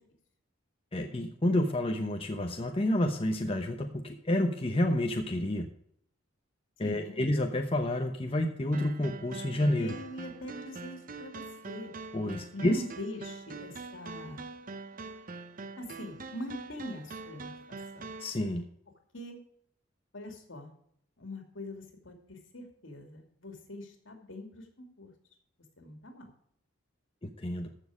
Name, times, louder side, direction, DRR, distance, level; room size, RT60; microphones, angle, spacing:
voice 1, 0.9-5.7 6.8-9.9 12.1-12.8 18.2-18.6 27.2-27.7, left 1 dB, 30° left, 4 dB, 0.9 m, -29 dB
voice 2, 6.8-7.3 9.7-11.9 12.5-14.5 15.8-18.1 19.1-19.4 20.1-20.7 21.2-25.1 25.8-26.3, left 1 dB, 75° left, 4 dB, 2.6 m, -43 dB
sound 1, 8.7-18.3, right 3 dB, 45° right, 0.8 m, -44 dB
14.5 x 6.5 x 4.9 m, 0.67 s
head